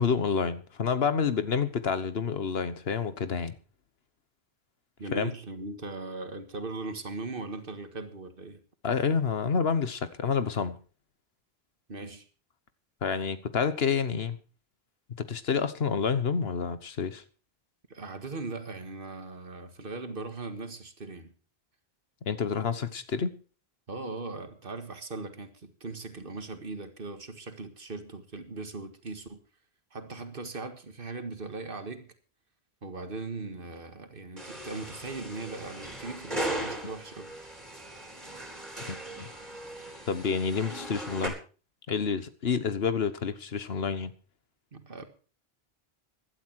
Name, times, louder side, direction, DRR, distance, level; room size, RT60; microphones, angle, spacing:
voice 1, 0.0-3.5 5.1-5.3 8.8-10.8 13.0-14.4 15.2-17.2 22.3-23.3 38.9-39.3 40.1-41.4 41.9-44.1, left 6 dB, 80° left, 1.4 m, -28 dB
voice 2, 5.0-8.6 11.9-12.3 17.9-21.3 23.9-29.4 29.9-32.1 32.8-37.3 44.7-45.1, right 3 dB, 60° right, 1.9 m, -39 dB
sound 1, 34.4-41.3, right 1 dB, 40° right, 4.4 m, -38 dB
16.5 x 12.0 x 4.6 m
omnidirectional pair, 1.0 m